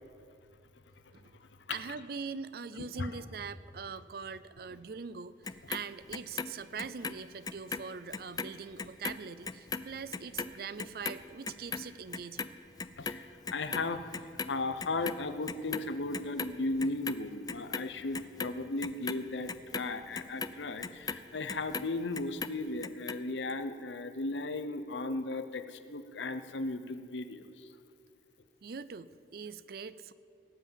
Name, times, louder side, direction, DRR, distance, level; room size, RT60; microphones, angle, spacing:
voice 1, 1.1-1.4 1.7-12.5 28.6-30.1, right 5 dB, 55° right, 16 dB, 0.4 m, -42 dB
Clock, 5.4-7.8 8.1-14.5 14.8-15.9 16.1-17.1 17.5-21.9 22.2-23.2 23.5-23.6, left 5 dB, 20° left, 0.3 m, -38 dB
voice 2, 13.0-27.7, left 2 dB, 80° left, 10 dB, 0.8 m, -36 dB
18.5 x 8.2 x 7.5 m, 2.4 s
head